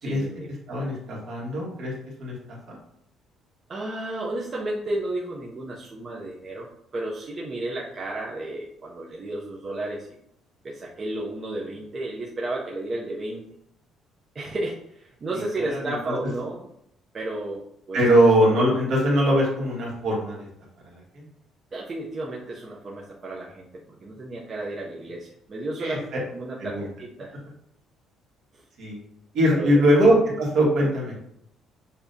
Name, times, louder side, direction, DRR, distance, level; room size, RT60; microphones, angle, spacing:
voice 1, 0.0-0.5 3.7-6.7 6.9-10.1 10.6-13.4 14.3-16.7 17.1-18.0 21.7-26.0 26.3-27.3 28.5-28.6 29.5-29.8, right 2 dB, 25° right, -3 dB, 0.5 m, -32 dB
voice 2, 0.7-1.9 2.2-2.8 15.7-16.0 17.9-20.5 20.8-21.2 25.8-26.0 26.6-26.9 28.8-29.0 29.3-31.1, equal, 55° right, -3 dB, 1.6 m, -21 dB
6.9 x 2.7 x 2.7 m, 0.73 s
cardioid pair, 165°, 0 cm